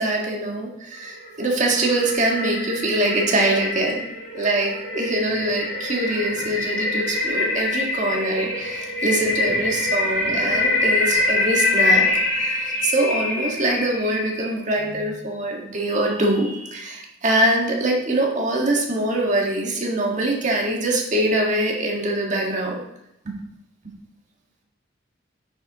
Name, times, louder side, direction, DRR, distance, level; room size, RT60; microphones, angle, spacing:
voice 1, 0.0-4.1 4.3-22.8 23.2-23.3, right 1 dB, 40° right, -1 dB, 1.6 m, -23 dB
sound 1, 1.1-14.5, left 2 dB, 85° left, 2.7 m, -25 dB
9.3 x 7.4 x 3.0 m, 0.82 s
head